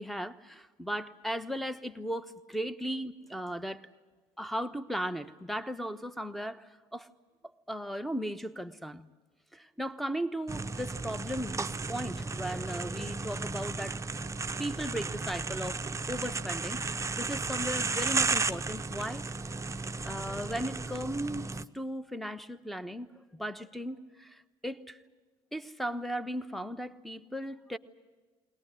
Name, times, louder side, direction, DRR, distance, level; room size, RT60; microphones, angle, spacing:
voice 1, 0.0-3.8 4.4-7.1 7.7-9.1 9.5-14.0 14.6-15.8 16.1-19.3 20.0-25.0 25.5-27.8, equal, ahead, 13 dB, 1.1 m, -37 dB
sound 1, 10.5-21.6, right 4 dB, 20° right, 0.7 m, -34 dB
21.5 x 19.0 x 9.9 m, 1.3 s
hypercardioid pair, 65°, 16 cm